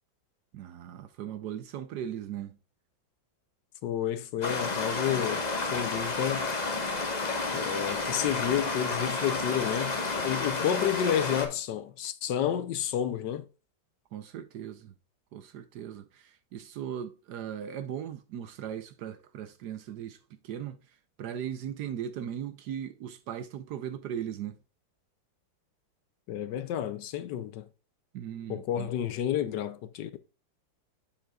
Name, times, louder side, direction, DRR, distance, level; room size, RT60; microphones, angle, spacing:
voice 1, 0.5-2.6 14.1-14.9 15.3-20.2 20.4-20.8 21.2-24.6 28.1-28.9, right 9 dB, 70° right, 1.1 m, -38 dB
voice 2, 3.8-6.5 7.5-10.0 10.2-13.5 26.3-27.6 28.5-30.2, left 10 dB, 70° left, 1.2 m, -30 dB
Stream, 4.4-11.5, left 3 dB, 30° left, 1.0 m, -31 dB
7.5 x 7.1 x 2.3 m
omnidirectional pair, 2.1 m